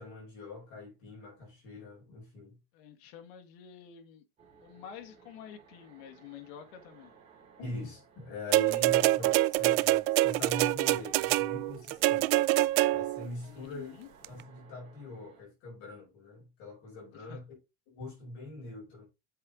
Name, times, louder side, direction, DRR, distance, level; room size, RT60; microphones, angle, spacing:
voice 1, 0.0-2.6 7.6-12.3 12.9-13.9 14.3-17.4 17.9-19.1, left 2 dB, 45° left, 4.9 m, -43 dB
voice 2, 2.7-4.2 4.6-7.1 13.5-14.1 17.1-17.4, left 8 dB, 70° left, 1.6 m, -49 dB
sound 1, 4.4-15.4, right 5 dB, 20° right, 2.9 m, -59 dB
sound 2, 8.5-13.3 14.2-14.3, right 18 dB, 70° right, 0.5 m, -25 dB
7.8 x 5.1 x 3.7 m
cardioid pair, 170°, 31 cm